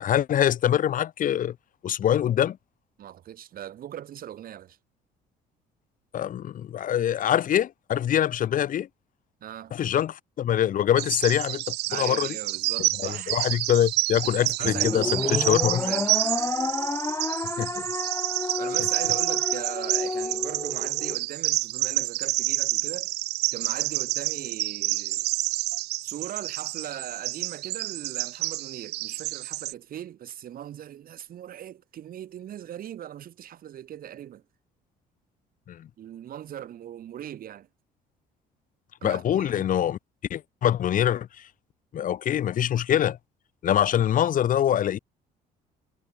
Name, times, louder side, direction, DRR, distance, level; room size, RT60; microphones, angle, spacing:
voice 1, 0.0-1.5 1.8-2.6 6.1-8.9 9.7-12.3 13.0-15.9 17.6-17.8 35.7-35.9 39.0-40.0 40.3-41.3 41.9-43.2 43.6-45.0, left 10 dB, 55° left, 1.5 m, -24 dB
voice 2, 3.0-4.8 9.4-9.7 11.9-13.4 14.4-16.1 18.6-23.1 23.5-25.3 25.7-34.4 36.0-37.7 39.0-39.5, right 11 dB, 60° right, 7.3 m, -39 dB
Bird vocalization bird call bird song, 11.0-29.7, right 19 dB, 80° right, 0.5 m, -29 dB
sound 1, 14.6-21.2, left 3 dB, 15° left, 2.4 m, -30 dB
cardioid pair, 110°, 17 cm